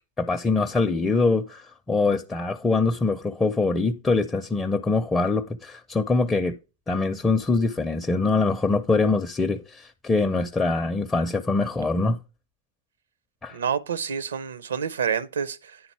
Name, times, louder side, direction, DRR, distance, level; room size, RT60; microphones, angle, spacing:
voice 1, 0.2-6.6 6.9-12.2 13.4-13.6, left 3 dB, 15° left, 0.5 m, -23 dB
voice 2, 13.5-15.8, right 7 dB, 65° right, 0.6 m, -28 dB
10.0 x 4.0 x 4.5 m
figure-of-eight pair, 90°, 0 cm